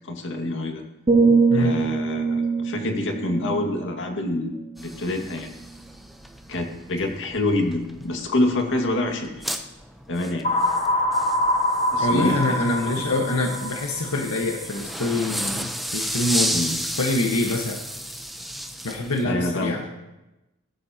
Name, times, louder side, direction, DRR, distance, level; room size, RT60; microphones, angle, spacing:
voice 1, 0.0-0.8 1.5-5.5 6.5-9.4 10.1-10.5 11.9-12.6 13.1-13.2 16.5-16.7 19.2-19.7, left 2 dB, 60° left, 3 dB, 2.1 m, -26 dB
sound 1, 1.1-5.0 5.5-5.7, right 4 dB, 25° right, 0.5 m, -23 dB
sound 2, 4.8-19.2, equal, ahead, 0.8 m, -33 dB
sound 3, 10.4-14.3, left 1 dB, 30° left, 1.0 m, -24 dB
voice 2, 12.0-16.6 17.0-17.8 18.8-19.8, left 2 dB, 85° left, 0 dB, 1.5 m, -25 dB
19.5 x 13.0 x 3.0 m, 1.0 s
head